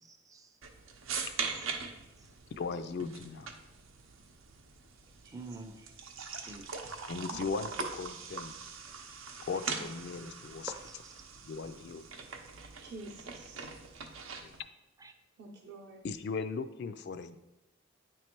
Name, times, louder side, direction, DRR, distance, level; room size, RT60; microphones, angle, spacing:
voice 1, 0.0-0.5 5.3-5.9 6.4-7.1 10.7-11.5 15.0-15.1, right 2 dB, 15° right, 0.4 m, -48 dB
sound 1, 0.6-14.6, right 5 dB, 85° right, 0.7 m, -42 dB
voice 2, 2.6-3.5 7.1-8.5 9.5-10.7 11.4-12.2 14.4-14.5 16.0-17.4, left 4 dB, 55° left, 0.3 m, -38 dB
voice 3, 12.8-14.0 15.4-16.0, right 2 dB, 50° right, 0.7 m, -49 dB
9.1 x 3.2 x 4.4 m
head